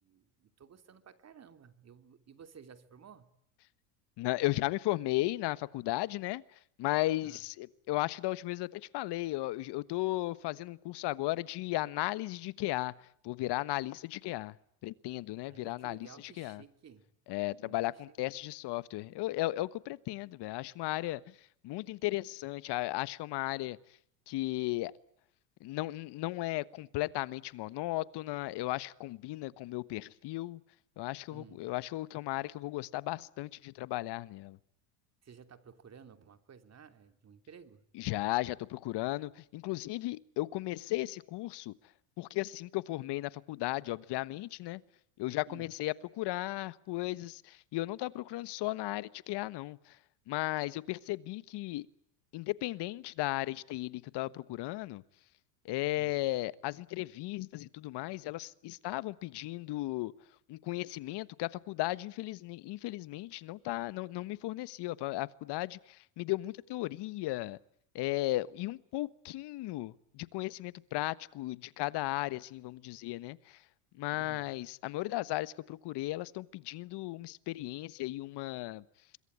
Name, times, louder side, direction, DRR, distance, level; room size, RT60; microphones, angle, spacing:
voice 1, 0.0-3.3 7.2-7.4 15.4-17.0 17.6-18.1 31.3-31.6 35.2-37.8 45.5-45.7 56.0-56.2 74.1-74.5, right 7 dB, 30° right, 10 dB, 3.0 m, -55 dB
voice 2, 4.2-6.4 6.8-12.9 13.2-14.6 14.8-16.6 17.3-21.4 21.6-23.8 24.3-24.9 25.6-30.6 31.0-34.6 37.9-41.7 42.2-44.8 45.2-50.0 50.3-51.9 52.3-55.0 55.6-60.1 60.5-67.6 67.9-73.6 74.0-78.8, left 18 dB, 55° left, 18 dB, 1.3 m, -35 dB
26.0 x 22.5 x 9.6 m, 0.68 s
supercardioid pair, 100°, 50 cm